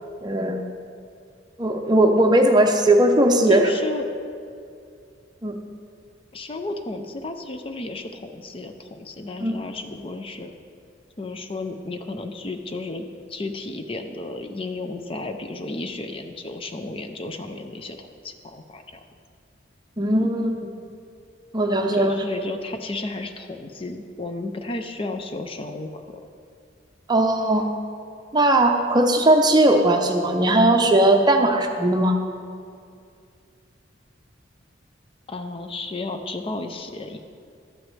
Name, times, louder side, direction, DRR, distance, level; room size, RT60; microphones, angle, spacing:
voice 1, 0.2-0.6 1.6-3.7 5.4-5.5 9.4-9.6 20.0-20.6 21.5-22.2 27.1-27.6 28.3-32.2, right 1 dB, 20° right, 4 dB, 0.6 m, -18 dB
voice 2, 3.4-4.0 6.3-10.5 11.2-18.8 21.9-26.2 35.3-37.2, left 2 dB, 30° left, 6 dB, 0.5 m, -33 dB
12.0 x 9.2 x 3.3 m, 2.3 s
head